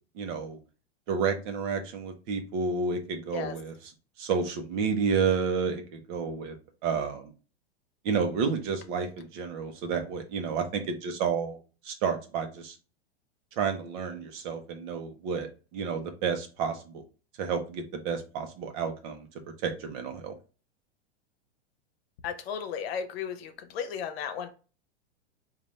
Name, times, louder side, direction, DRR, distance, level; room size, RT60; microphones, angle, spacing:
voice 1, 0.1-0.6 1.1-3.9 4.2-6.5 6.8-7.3 8.0-11.6 11.8-12.8 13.6-16.9 17.4-19.3 19.6-20.3, right 5 dB, 50° right, 6 dB, 1.0 m, -30 dB
voice 2, 22.2-24.5, left 7 dB, 65° left, 7 dB, 0.9 m, -34 dB
3.9 x 2.6 x 3.2 m, 0.34 s
hypercardioid pair, 130°, 33 cm